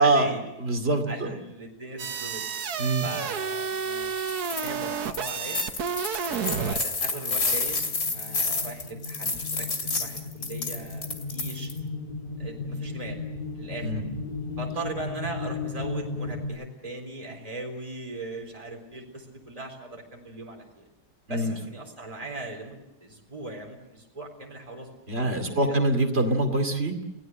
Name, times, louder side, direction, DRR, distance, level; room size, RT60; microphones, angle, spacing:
voice 1, 0.0-0.4 1.1-2.4 3.0-4.2 4.5-5.6 6.2-11.7 12.4-13.2 13.5-13.9 14.6-20.9 21.3-24.9 25.4-25.8, right 2 dB, 20° right, 1 dB, 4.0 m, -39 dB
voice 2, 0.6-1.3 2.8-3.1 13.8-14.0 21.3-21.5 25.1-27.0, right 2 dB, 40° right, 5 dB, 2.8 m, -24 dB
sound 1, 2.0-6.8, right 6 dB, 70° right, 1.6 m, -31 dB
sound 2, 4.2-4.7 5.1-11.8, left 3 dB, 50° left, 2.8 m, -30 dB
sound 3, 7.7-16.5, left 3 dB, 30° left, 2.8 m, -36 dB
29.5 x 18.0 x 7.8 m, 0.97 s
omnidirectional pair, 1.7 m